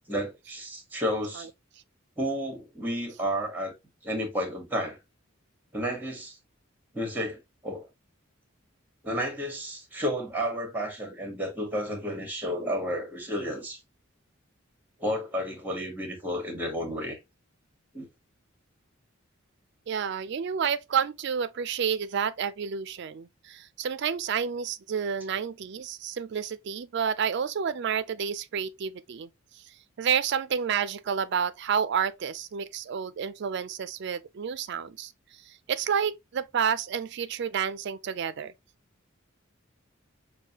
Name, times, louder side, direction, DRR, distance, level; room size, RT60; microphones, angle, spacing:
voice 1, 0.1-1.5 2.2-3.7 4.0-5.0 5.7-6.4 6.9-7.9 9.0-13.8 15.0-17.2 17.9-18.1, equal, 10° right, 1.4 m, -31 dB
voice 2, 19.9-29.6 30.0-38.5, right 7 dB, 55° right, 0.4 m, -30 dB
6.4 x 2.2 x 2.9 m
head